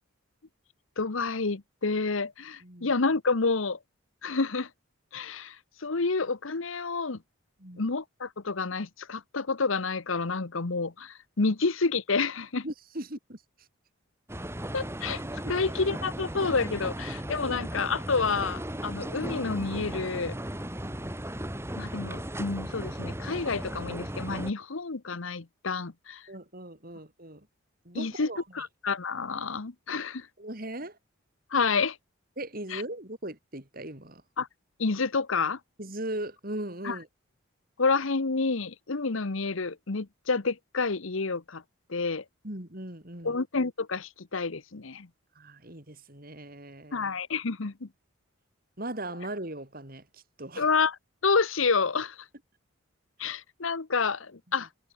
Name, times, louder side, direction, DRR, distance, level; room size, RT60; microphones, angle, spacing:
voice 1, 1.0-3.8 4.2-4.7 5.1-7.2 7.8-12.6 14.7-15.2 15.5-20.4 21.8-26.2 27.9-28.3 28.5-30.3 31.5-32.0 32.7-32.8 34.4-34.5 34.8-35.6 36.8-37.0 37.8-41.6 41.9-42.2 43.2-45.1 46.9-47.9 50.6-51.0 51.2-52.2 53.2-54.7, left 4 dB, 70° left, 1.0 m, -29 dB
voice 2, 2.6-2.9 7.6-7.9 12.6-13.4 15.4-15.7 17.4-17.5 26.3-27.5 27.8-28.4 30.4-31.0 32.4-34.2 35.8-37.1 42.4-43.4 45.4-47.0 48.8-50.7 53.2-53.4, right 1 dB, 45° right, 3.9 m, -39 dB
sound 1, 14.3-24.5, right 1 dB, 10° right, 2.6 m, -36 dB
head